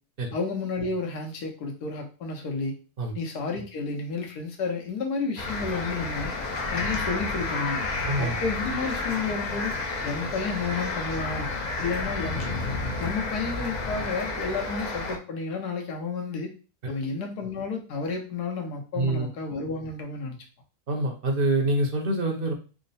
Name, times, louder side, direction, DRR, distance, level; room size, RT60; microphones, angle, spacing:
voice 1, 0.3-2.8 3.1-6.3 6.7-7.8 8.2-9.7 10.0-11.5 11.8-12.5 13.0-16.5 16.9-20.4, left 4 dB, 90° left, 2 dB, 1.4 m, -31 dB
sound 1, 5.4-15.2, left 3 dB, 65° left, 0.4 m, -31 dB
sound 2, 5.6-10.6, left 4 dB, 10° left, 0.7 m, -45 dB
voice 2, 8.1-8.4 10.2-10.3 16.8-17.0 19.0-19.3 20.9-22.5, right 1 dB, 50° right, 2 dB, 0.7 m, -26 dB
3.6 x 2.1 x 4.0 m, 0.35 s
omnidirectional pair, 1.6 m